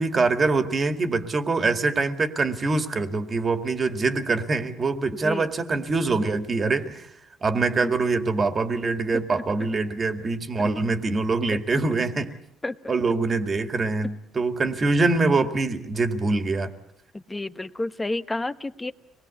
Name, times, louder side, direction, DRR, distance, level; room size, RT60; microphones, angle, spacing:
voice 1, 0.0-7.1 7.4-12.3 12.9-16.7, right 3 dB, 30° right, 8 dB, 2.0 m, -24 dB
voice 2, 9.1-9.4 10.6-10.7 11.5-11.6 12.6-12.9 17.1-18.9, left 2 dB, 10° left, 12 dB, 1.0 m, -31 dB
25.5 x 21.0 x 8.3 m, 0.74 s
cardioid pair, 135°, 0 cm